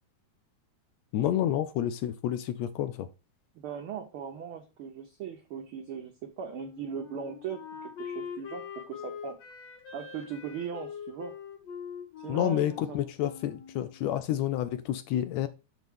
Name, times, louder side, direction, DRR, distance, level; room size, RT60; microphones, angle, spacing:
voice 1, 1.1-3.1 12.3-15.5, left 11 dB, 80° left, 1.7 m, -29 dB
voice 2, 3.5-9.4 9.9-11.4 12.2-13.1, right 7 dB, 85° right, 1.2 m, -39 dB
Wind instrument woodwind instrument, 6.5-14.0, left 7 dB, 60° left, 2.6 m, -43 dB
6.4 x 6.1 x 3.5 m
omnidirectional pair, 3.4 m